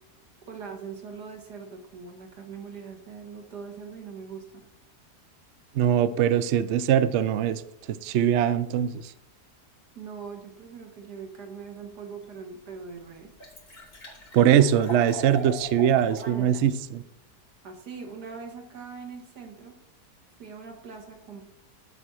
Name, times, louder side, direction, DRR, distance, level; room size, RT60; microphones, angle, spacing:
voice 1, 0.5-4.6 10.0-13.3 16.2-16.7 17.6-19.7 20.4-21.4, right 5 dB, 85° right, 3 dB, 2.1 m, -41 dB
voice 2, 5.8-7.6 7.9-9.1 14.3-17.0, right 9 dB, 65° right, 13 dB, 0.7 m, -22 dB
Liquid, 12.2-12.3 12.8-12.9 13.1-16.3 16.7-16.8, right 3 dB, 35° left, 3.3 m, -39 dB
12.0 x 4.2 x 6.3 m, 0.82 s
omnidirectional pair, 1.7 m